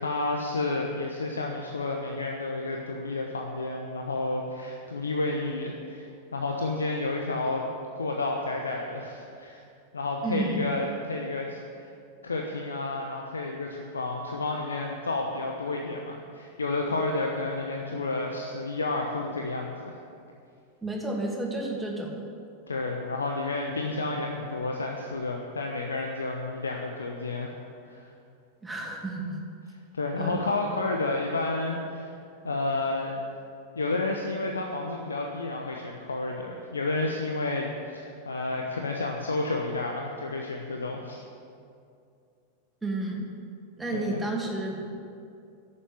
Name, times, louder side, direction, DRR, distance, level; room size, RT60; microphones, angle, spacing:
voice 1, 0.0-7.6 7.9-9.6 9.9-11.9 12.2-20.0 22.7-27.5 27.9-28.1 29.9-32.1 32.4-33.1 33.7-41.2 43.9-44.2, left 2 dB, 75° left, 1 dB, 1.0 m, -31 dB
voice 2, 10.2-10.7 20.8-22.2 28.6-29.4 30.2-30.4 42.8-43.3 43.8-45.0, right 2 dB, 10° right, -1 dB, 2.5 m, -31 dB
11.0 x 8.8 x 9.5 m, 2.4 s
figure-of-eight pair, 90°, 0 cm